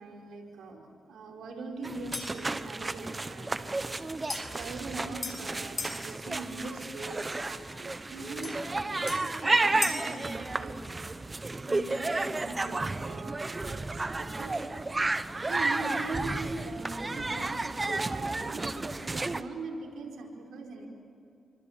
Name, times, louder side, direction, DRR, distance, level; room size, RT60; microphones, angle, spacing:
voice 1, 0.0-3.9 4.4-11.2 11.4-14.6 15.5-18.7 19.0-20.9, right 3 dB, 90° right, 0 dB, 4.6 m, -41 dB
sound 1, 1.8-19.4, right 2 dB, 25° right, 1.0 m, -32 dB
sound 2, 2.1-2.5 4.3-6.0 8.4-10.1, left 3 dB, 35° left, 6.2 m, -38 dB
28.5 x 25.0 x 7.5 m, 2.7 s
cardioid pair, 90°, 0 cm